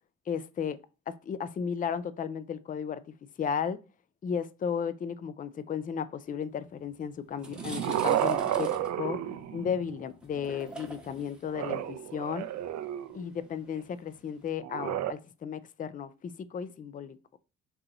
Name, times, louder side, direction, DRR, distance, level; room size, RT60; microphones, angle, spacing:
voice 1, 0.3-0.8 1.1-3.0 3.4-3.8 4.2-9.2 9.5-12.5 13.1-17.4, left 7 dB, 30° left, 0.4 m, -34 dB
sound 1, 6.8-6.9 7.3-14.6, right 1 dB, 5° right, 0.8 m, -46 dB
sound 2, 7.3-10.0 11.5-13.2 14.6-15.1, right 11 dB, 65° right, 0.5 m, -31 dB
3.8 x 2.9 x 3.8 m
cardioid pair, 90°, 30 cm